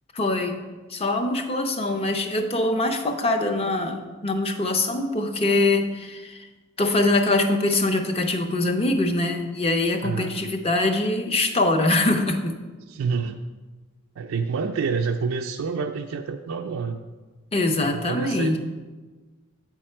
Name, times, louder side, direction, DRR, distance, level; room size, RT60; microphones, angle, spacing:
voice 1, 0.1-0.6 0.9-6.5 6.8-12.6 17.5-18.6, left 2 dB, 30° left, 5 dB, 0.6 m, -23 dB
voice 2, 10.0-10.5 12.9-13.4 14.2-17.0 17.9-18.6, right 5 dB, 75° right, 3 dB, 0.4 m, -28 dB
8.1 x 4.8 x 4.3 m, 1.3 s
head